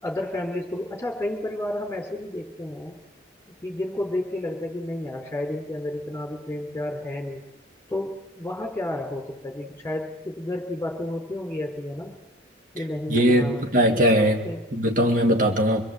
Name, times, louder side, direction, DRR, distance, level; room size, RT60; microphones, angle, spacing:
voice 1, 0.0-3.0 3.6-7.4 7.9-12.1 12.7-13.6 14.4-14.6, left 1 dB, 15° left, 4.0 m, -31 dB
voice 2, 13.1-15.8, equal, 45° right, 2.4 m, -20 dB
24.5 x 22.0 x 8.2 m
head